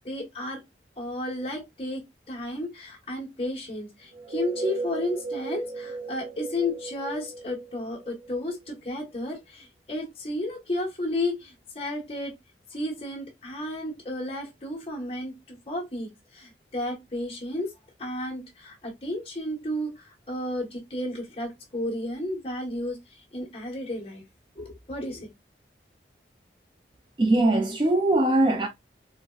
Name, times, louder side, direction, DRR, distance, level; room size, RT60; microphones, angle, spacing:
voice 1, 0.0-0.6 1.0-12.3 12.7-17.7 18.0-24.2 24.6-25.3, left 1 dB, 35° left, 1.1 m, -33 dB
sound 1, 4.1-8.7, right 4 dB, 85° right, 0.9 m, -36 dB
voice 2, 27.2-28.7, right 2 dB, 25° right, 0.4 m, -21 dB
3.9 x 2.1 x 2.3 m
head